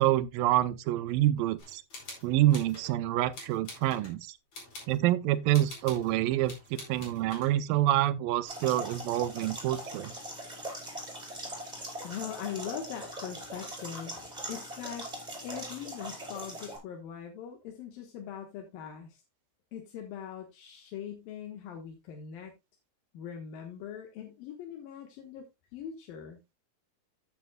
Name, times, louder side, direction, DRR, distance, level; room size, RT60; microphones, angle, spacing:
voice 1, 0.0-1.8 2.2-4.4 4.9-10.1, right 14 dB, 85° right, 2.3 m, -27 dB
sound 1, 1.6-2.9 3.3-4.1 4.5-5.0 5.5-6.1 6.4-7.6, left 2 dB, 50° left, 5.7 m, -46 dB
sound 2, 8.5-16.8, right 1 dB, 10° right, 4.7 m, -41 dB
voice 2, 12.0-14.2 14.5-15.1 15.4-19.2 19.7-22.5 23.1-25.5 25.7-26.4, left 9 dB, 80° left, 3.0 m, -41 dB
14.0 x 8.2 x 2.2 m
omnidirectional pair, 4.0 m